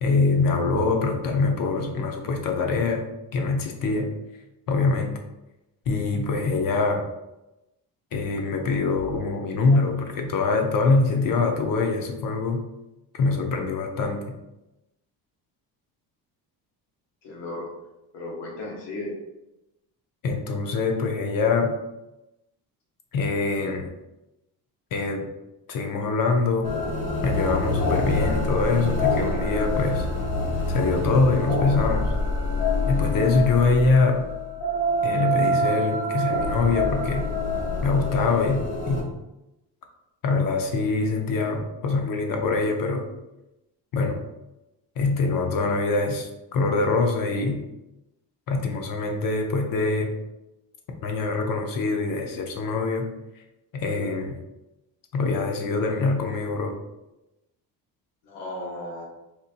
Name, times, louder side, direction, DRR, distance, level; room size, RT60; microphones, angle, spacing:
voice 1, 0.0-4.2 4.7-5.2 5.9-7.1 8.1-12.7 13.1-14.4 20.2-21.8 23.1-23.9 24.9-25.3 25.7-26.7 27.2-30.0 30.7-32.1 32.9-34.3 35.0-37.3 37.8-39.1 40.2-43.1 43.9-44.2 45.0-47.6 48.5-50.1 51.0-53.1 53.7-54.4 55.1-56.8, left 3 dB, 55° left, 4 dB, 0.8 m, -24 dB
voice 2, 17.2-17.7 18.1-19.1 58.2-59.1, left 2 dB, 90° left, -2 dB, 1.3 m, -35 dB
sound 1, 26.6-39.0, left 1 dB, 75° left, 1.5 m, -26 dB
4.3 x 2.7 x 2.5 m, 0.95 s
cardioid pair, 90°, 40 cm